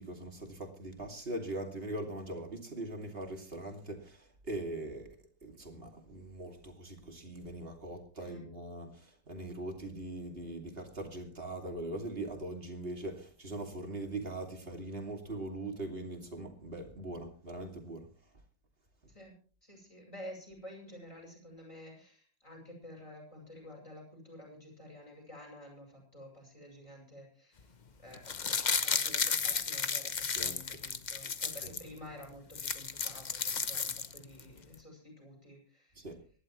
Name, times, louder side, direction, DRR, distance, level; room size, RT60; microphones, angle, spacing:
voice 1, 0.0-4.2 4.5-5.2 5.4-18.0 30.4-30.6 31.6-31.7 36.0-36.1, right 2 dB, 30° right, 2 dB, 2.8 m, -41 dB
voice 2, 8.2-8.5 19.1-19.3 19.6-27.7 28.0-28.6 28.8-36.0, equal, 15° left, -1 dB, 7.8 m, -50 dB
sound 1, 28.1-31.8 32.2-32.3 32.5-34.4 34.7-34.8, left 5 dB, 50° left, 0.5 m, -33 dB
24.5 x 11.5 x 3.2 m, 0.43 s
omnidirectional pair, 2.0 m